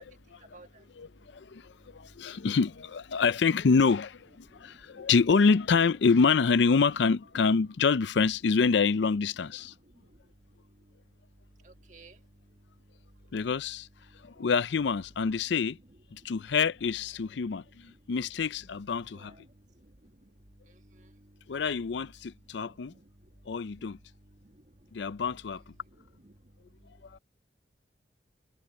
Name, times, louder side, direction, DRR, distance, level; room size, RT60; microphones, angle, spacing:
voice 1, 0.0-2.4 4.4-5.1 9.6-13.4 14.0-14.5 16.2-16.5 17.4-18.1 19.1-21.6 22.2-25.2 25.9-27.2, right 1 dB, 40° right, 1.6 m, -58 dB
voice 2, 1.0-9.7 13.3-13.9 14.2-15.8 16.1-19.3 21.5-22.9 23.5-24.0 24.9-25.6 27.1-27.2, left 5 dB, 75° left, 0.5 m, -26 dB
head